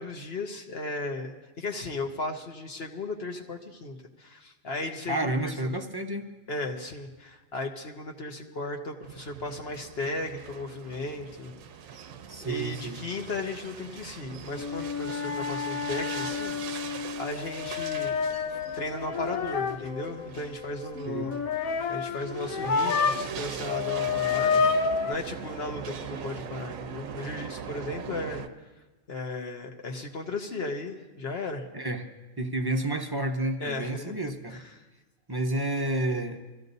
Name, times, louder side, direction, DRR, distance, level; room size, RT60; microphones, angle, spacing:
voice 1, 0.0-5.5 6.5-11.5 12.4-18.1 18.8-21.4 21.9-28.4 29.1-31.7 33.6-34.8, left 2 dB, 50° left, 2 dB, 1.1 m, -36 dB
voice 2, 5.1-6.3 12.3-13.0 21.1-21.3 31.7-32.1 32.4-34.6 35.3-36.4, right 1 dB, 25° right, 5 dB, 0.5 m, -30 dB
sound 1, 9.0-28.5, right 7 dB, 75° right, 1.1 m, -41 dB
sound 2, 14.5-23.4 23.6-25.1, left 5 dB, 85° left, 1.1 m, -29 dB
24.5 x 14.5 x 2.7 m, 1.2 s
omnidirectional pair, 1.4 m